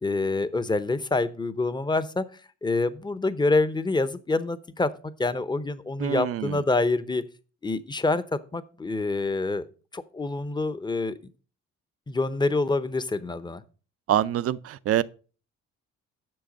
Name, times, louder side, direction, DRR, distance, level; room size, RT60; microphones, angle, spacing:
voice 1, 0.0-2.2 2.6-4.9 5.2-7.2 7.6-8.2 8.5-9.7 9.9-11.2 12.1-13.6, left 3 dB, 15° left, 0.7 m, -26 dB
voice 2, 6.0-6.6 14.1-15.0, right 11 dB, 50° right, 0.5 m, -25 dB
7.7 x 6.3 x 5.2 m
cardioid pair, 90°, 30 cm